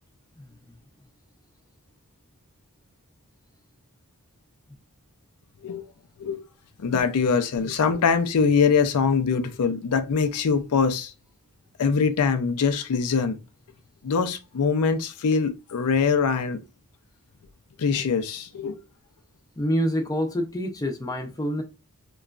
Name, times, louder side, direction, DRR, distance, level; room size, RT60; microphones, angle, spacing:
voice 1, 6.8-11.1 11.8-13.4 14.0-16.6 17.8-18.8, left 5 dB, 80° left, 0.4 m, -23 dB
voice 2, 19.6-21.6, equal, 15° left, 0.5 m, -27 dB
2.9 x 2.3 x 2.4 m
head